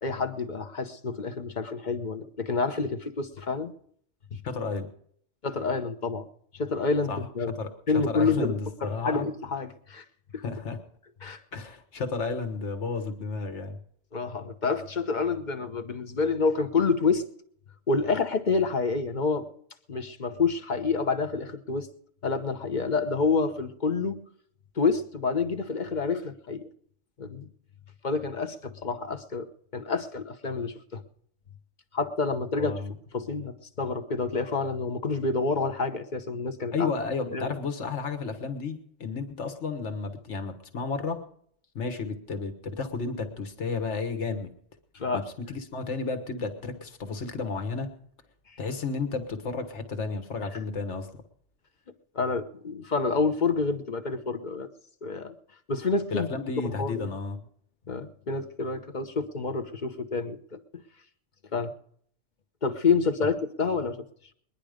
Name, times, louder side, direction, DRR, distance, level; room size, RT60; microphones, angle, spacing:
voice 1, 0.0-3.7 4.3-4.4 5.4-6.3 6.5-7.5 7.9-8.6 8.8-10.0 11.2-11.4 14.1-17.2 17.9-19.5 19.9-21.9 22.2-24.2 24.8-26.7 27.2-27.5 28.0-29.5 29.7-31.0 31.9-32.7 33.1-36.9 37.3-37.6 44.9-45.2 52.1-54.7 55.0-55.3 55.7-56.3 56.6-57.1 57.9-60.6 61.5-61.7 62.6-64.0, left 4 dB, 40° left, 9 dB, 1.0 m, -28 dB
voice 2, 4.4-4.9 7.1-7.2 7.6-7.7 8.1-9.3 10.4-10.8 11.5-13.8 32.6-32.9 36.7-41.2 41.8-44.5 45.1-47.9 48.6-51.1 56.1-57.4 63.2-63.3, left 4 dB, 70° left, 7 dB, 1.8 m, -32 dB
21.5 x 10.5 x 5.0 m, 0.64 s
omnidirectional pair, 1.3 m